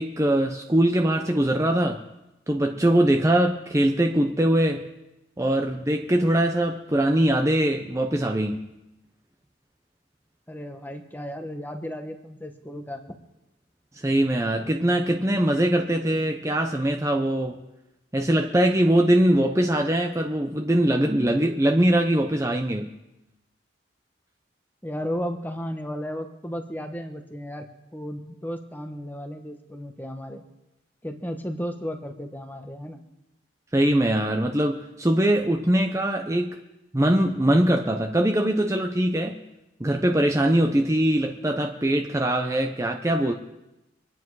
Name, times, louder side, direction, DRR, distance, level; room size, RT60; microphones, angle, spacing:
voice 1, 0.0-2.0 2.5-4.8 5.4-8.6 14.0-17.6 18.1-22.9 33.7-36.6 36.9-39.4 39.8-43.3, right 1 dB, 15° right, 3 dB, 0.7 m, -22 dB
voice 2, 10.5-13.0 24.8-27.6 27.9-30.4 31.0-33.0, equal, 10° left, 6 dB, 1.1 m, -34 dB
24.5 x 9.5 x 4.7 m, 0.94 s
head